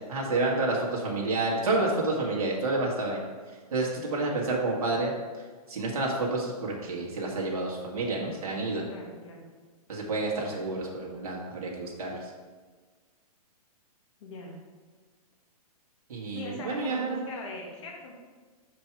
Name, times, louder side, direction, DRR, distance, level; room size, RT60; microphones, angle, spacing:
voice 1, 0.1-3.2 3.7-5.1 5.7-8.9 9.9-12.3 16.1-17.2, right 2 dB, 70° right, -3 dB, 1.9 m, -29 dB
voice 2, 8.9-9.5 14.2-14.5 16.3-18.2, left 2 dB, 50° left, 0 dB, 1.8 m, -40 dB
5.9 x 5.2 x 4.6 m, 1.4 s
hypercardioid pair, 135°, 20 cm